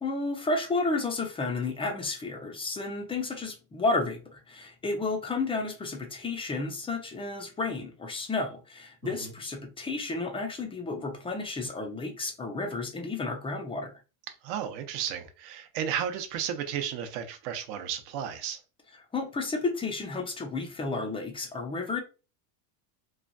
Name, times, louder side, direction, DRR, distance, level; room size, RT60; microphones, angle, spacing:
voice 1, 0.0-13.9 19.1-22.0, left 3 dB, 10° left, 0.4 m, -32 dB
voice 2, 9.0-9.3 14.4-18.6, right 9 dB, 60° right, 0.8 m, -33 dB
3.1 x 2.2 x 2.5 m
supercardioid pair, 115°, 49 cm